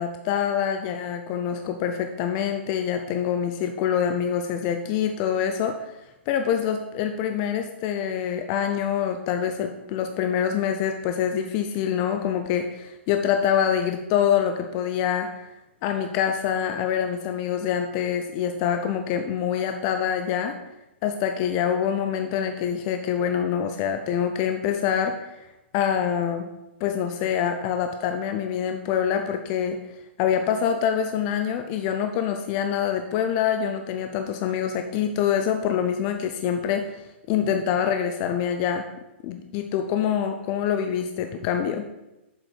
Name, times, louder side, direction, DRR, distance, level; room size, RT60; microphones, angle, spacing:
voice 1, 0.0-5.9 6.3-15.3 15.8-20.6 21.0-25.4 25.7-26.5 26.8-29.8 30.2-38.9 39.2-41.9, left 8 dB, 35° left, 6 dB, 0.5 m, -25 dB
7.4 x 5.1 x 4.6 m, 0.97 s
hypercardioid pair, 145°, 7 cm